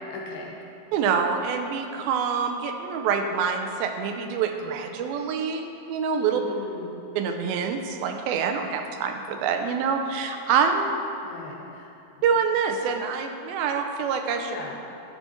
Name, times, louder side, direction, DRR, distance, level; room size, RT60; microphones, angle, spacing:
voice 1, 0.1-0.5 6.3-6.9 11.2-11.9 12.2-12.3 14.4-14.8, left 3 dB, 80° left, -1 dB, 2.9 m, -38 dB
voice 2, 0.9-6.4 7.2-10.9 12.2-14.6, right 6 dB, 85° right, 5 dB, 2.4 m, -26 dB
11.0 x 7.4 x 4.4 m, 2.6 s
omnidirectional pair, 4.3 m